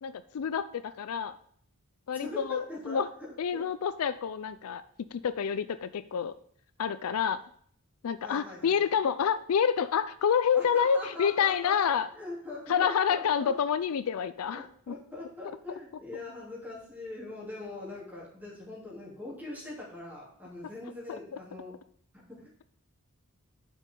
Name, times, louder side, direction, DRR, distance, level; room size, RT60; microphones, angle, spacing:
voice 1, 0.0-1.4 2.1-3.1 3.4-4.8 5.1-6.4 6.8-7.4 8.0-12.1 12.7-14.9 21.1-21.4, left 7 dB, 70° left, 14 dB, 0.4 m, -28 dB
voice 2, 2.2-3.6 8.2-8.9 10.5-13.5 14.5-21.7 22.3-22.6, left 2 dB, 10° right, -6 dB, 3.1 m, -42 dB
11.0 x 6.3 x 3.8 m, 0.62 s
head